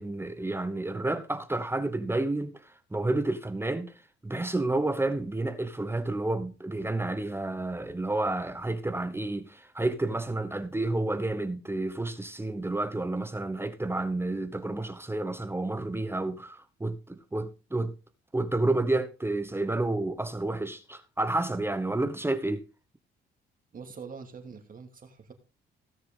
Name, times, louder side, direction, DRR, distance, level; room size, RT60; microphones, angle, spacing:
voice 1, 0.0-3.9 4.2-17.9 18.3-22.6, right 2 dB, 10° right, 1.0 m, -30 dB
voice 2, 23.7-25.3, right 5 dB, 45° right, 2.7 m, -44 dB
17.0 x 6.5 x 3.8 m
cardioid pair, 90°, 20 cm